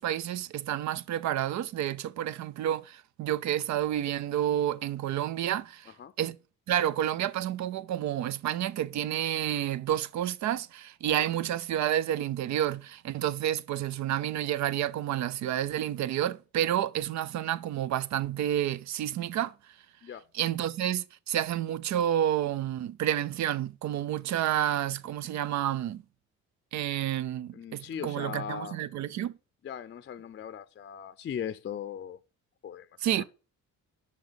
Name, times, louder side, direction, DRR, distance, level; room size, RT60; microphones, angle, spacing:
voice 1, 0.0-6.4 6.7-19.5 20.3-26.0 26.7-29.3 33.0-33.2, right 11 dB, 65° right, 0.5 m, -30 dB
voice 2, 27.5-28.8 29.6-32.2 32.6-33.2, left 8 dB, 40° left, 0.5 m, -39 dB
6.6 x 5.3 x 6.7 m
cardioid pair, 90°, 30 cm